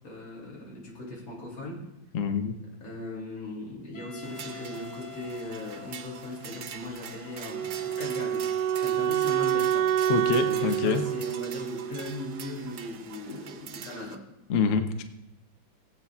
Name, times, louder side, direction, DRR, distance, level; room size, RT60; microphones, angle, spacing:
voice 1, 0.0-1.8 2.8-8.5 8.8-9.9 10.4-14.2, left 1 dB, 85° left, -3 dB, 3.6 m, -38 dB
voice 2, 2.1-2.6 10.1-11.0 14.5-15.0, left 5 dB, 55° left, 7 dB, 0.9 m, -26 dB
Wind instrument woodwind instrument, 3.9-8.9, left 8 dB, 30° left, 0.8 m, -48 dB
sound 1, 4.2-14.2, right 8 dB, 65° right, 1.2 m, -44 dB
Wind instrument woodwind instrument 2, 7.5-12.5, right 10 dB, 85° right, 1.4 m, -28 dB
21.0 x 8.2 x 2.4 m, 0.91 s
omnidirectional pair, 2.1 m